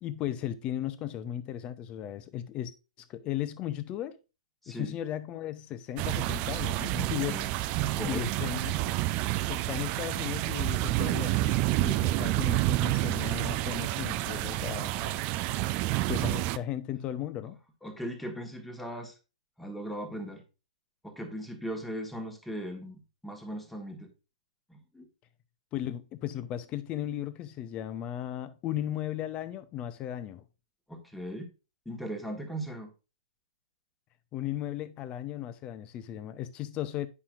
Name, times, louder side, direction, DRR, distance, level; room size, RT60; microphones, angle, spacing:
voice 1, 0.0-2.7 3.0-4.2 4.7-7.4 8.0-8.7 9.5-11.5 11.8-15.2 16.1-17.6 25.7-30.4 34.3-37.1, left 12 dB, 25° left, 0.7 m, -36 dB
voice 2, 4.6-5.0 6.9-7.5 7.9-8.3 17.8-19.2 19.6-20.4 21.0-24.1 24.7-25.1 30.9-31.5 31.8-32.9, right 1 dB, 5° left, 1.4 m, -38 dB
sound 1, 6.0-16.6, right 16 dB, 30° right, 0.4 m, -29 dB
9.6 x 5.7 x 2.5 m
figure-of-eight pair, 125°, 4 cm